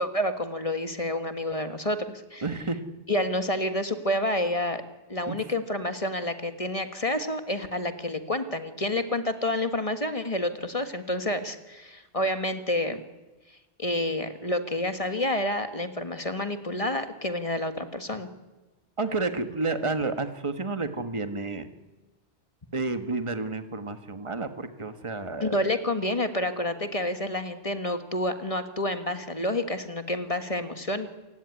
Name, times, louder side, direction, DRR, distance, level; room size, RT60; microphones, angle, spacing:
voice 1, 0.0-2.4 3.1-4.8 5.1-13.0 13.8-18.3 25.4-31.1, left 1 dB, 30° left, 8 dB, 1.6 m, -29 dB
voice 2, 2.4-2.8 5.3-5.5 19.0-21.7 22.7-25.7, right 3 dB, 30° right, 9 dB, 1.5 m, -30 dB
28.0 x 16.5 x 9.8 m, 1.1 s
omnidirectional pair, 1.1 m